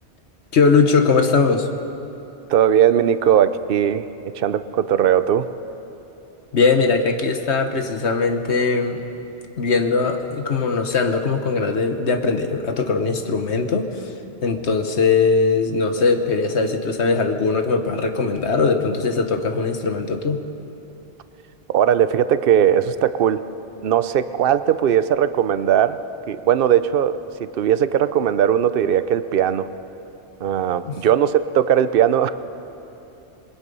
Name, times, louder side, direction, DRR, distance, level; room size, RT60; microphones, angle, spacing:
voice 1, 0.5-1.7 6.5-9.0 9.6-13.9 14.4-20.4 30.8-31.0, left 4 dB, 75° left, 6 dB, 1.5 m, -20 dB
voice 2, 2.5-4.1 4.4-5.5 21.7-23.4 23.8-26.0 26.3-29.7 30.4-32.3, right 9 dB, 60° right, 13 dB, 0.8 m, -18 dB
25.5 x 21.0 x 5.5 m, 2.9 s
omnidirectional pair, 1.1 m